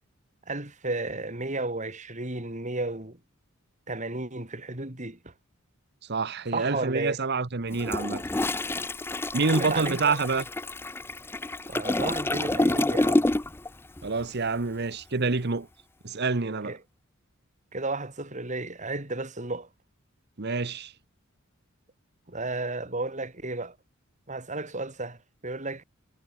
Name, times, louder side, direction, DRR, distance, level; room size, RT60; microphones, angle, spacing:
voice 1, 0.5-3.2 3.9-5.3 6.5-7.2 9.4-10.2 11.7-13.3 16.6-16.8 17.7-19.7 22.3-23.8 24.3-25.8, right 2 dB, 35° right, 3.5 m, -33 dB
voice 2, 6.1-8.2 9.3-10.4 14.0-15.7 16.0-16.8 20.4-20.9, right 4 dB, 50° right, 1.1 m, -27 dB
Toilet flush, 7.7-13.7 14.0-14.2, left 2 dB, 10° left, 0.4 m, -28 dB
head